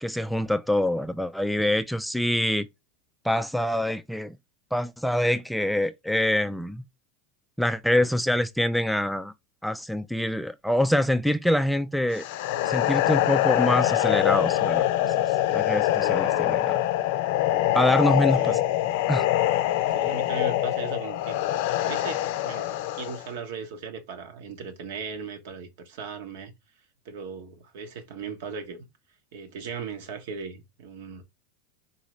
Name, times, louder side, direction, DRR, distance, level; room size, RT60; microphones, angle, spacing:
voice 1, 0.0-2.7 3.2-4.4 4.7-6.8 7.6-9.3 9.6-12.3 12.6-16.8 17.7-18.6 19.1-19.3, left 1 dB, ahead, 0.3 m, -25 dB
sound 1, 12.1-23.3, left 14 dB, 70° left, 0.5 m, -24 dB
voice 2, 18.3-18.9 19.6-21.4 21.8-22.7 22.9-26.5 27.0-28.8 29.3-31.2, right 5 dB, 70° right, 1.0 m, -38 dB
4.0 x 2.7 x 3.1 m
hypercardioid pair, 105°, 0 cm